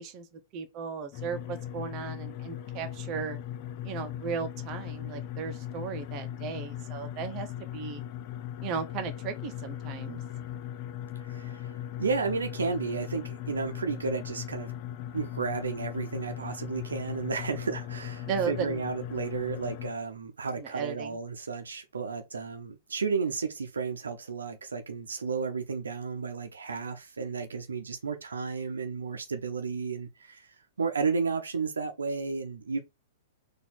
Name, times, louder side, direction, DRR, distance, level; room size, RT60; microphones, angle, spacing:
voice 1, 0.0-3.4 3.8-7.5 7.7-8.0 8.6-10.2 18.3-18.8 20.6-21.2, right 6 dB, 35° right, 0.9 m, -36 dB
sound 1, 1.1-19.9, left 11 dB, 45° left, 0.6 m, -38 dB
voice 2, 11.2-11.7 12.0-14.7 15.1-30.5 30.8-32.8, right 5 dB, 80° right, 0.8 m, -33 dB
4.3 x 2.7 x 4.2 m
figure-of-eight pair, 110°, 0 cm